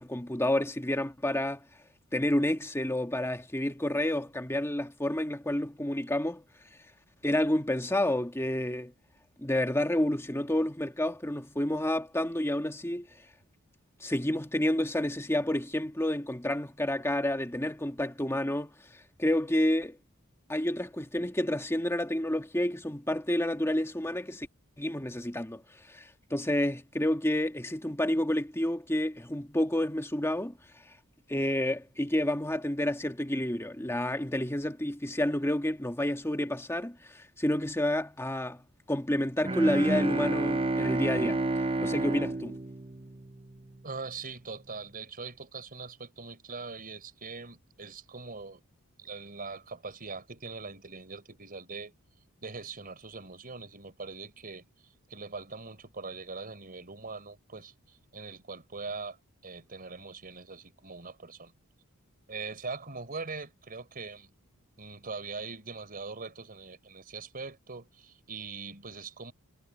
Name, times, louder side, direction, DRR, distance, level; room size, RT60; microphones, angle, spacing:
voice 1, 0.0-1.6 2.1-6.4 7.2-8.9 9.4-13.1 14.0-18.7 19.2-20.0 20.5-24.5 24.8-25.6 25.9-30.6 31.3-41.4 41.8-42.6, left 1 dB, 10° left, 1.8 m, -29 dB
Bowed string instrument, 39.4-43.7, right 2 dB, 25° right, 0.8 m, -30 dB
voice 2, 43.8-48.6 49.0-51.9 52.4-54.6 55.1-59.2 59.4-61.5 62.3-64.3 64.8-69.3, right 4 dB, 40° right, 4.8 m, -42 dB
head